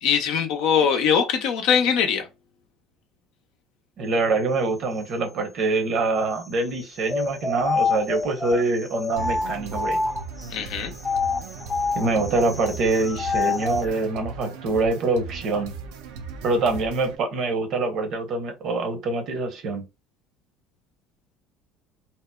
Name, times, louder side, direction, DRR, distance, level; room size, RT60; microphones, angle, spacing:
voice 1, 0.0-2.3 10.5-10.9, left 7 dB, 70° left, 0.5 m, -21 dB
voice 2, 4.0-10.0 11.9-15.7 16.4-19.8, right 3 dB, 60° right, 0.9 m, -25 dB
sound 1, 7.1-10.5 11.0-13.9, left 4 dB, 15° left, 0.4 m, -27 dB
sound 2, 9.2-17.2, right 4 dB, 80° right, 0.5 m, -37 dB
2.8 x 2.0 x 2.2 m
supercardioid pair, 80°, 0 cm